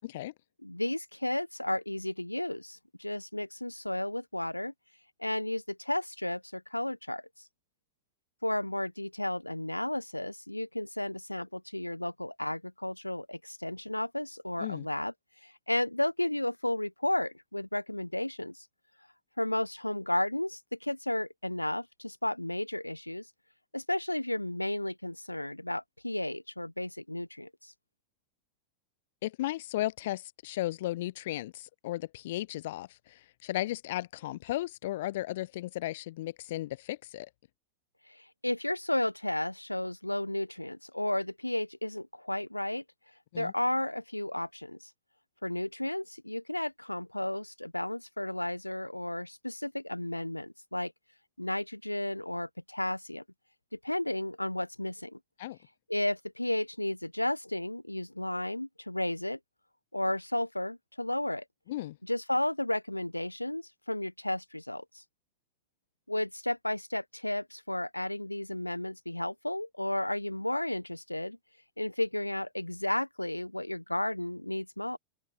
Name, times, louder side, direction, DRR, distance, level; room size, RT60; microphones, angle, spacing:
voice 1, 0.0-0.3 14.6-14.9 29.2-37.3 43.3-43.5 55.4-55.6 61.7-62.0, left 15 dB, 55° left, 0.6 m, -35 dB
voice 2, 0.6-4.7 5.2-7.2 8.4-15.1 15.4-18.7 19.4-23.3 23.7-27.7 38.1-42.8 43.4-44.8 45.4-50.9 51.4-53.2 53.7-55.2 55.9-59.4 59.9-61.4 62.0-65.0 66.1-71.4 71.8-75.0, left 1 dB, 85° left, 1.2 m, -33 dB
open air
figure-of-eight pair, 90°, 0 cm